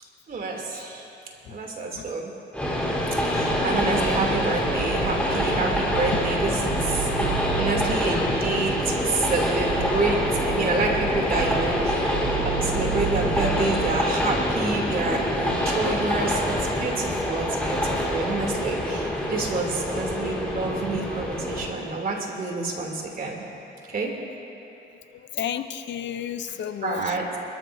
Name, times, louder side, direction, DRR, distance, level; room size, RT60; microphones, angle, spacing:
voice 1, 0.3-1.2 1.5-2.3 3.3-12.2 12.4-23.4 23.9-24.3 26.8-27.4, right 3 dB, 45° right, 0 dB, 3.0 m, -28 dB
Train, 2.5-21.7, left 1 dB, 5° left, 4.0 m, -26 dB
sound 1, 3.4-14.0, right 10 dB, 70° right, 0.7 m, -34 dB
voice 2, 25.1-27.2, left 9 dB, 65° left, 10 dB, 0.7 m, -32 dB
29.5 x 13.5 x 2.7 m, 2.8 s
cardioid pair, 90°, 20 cm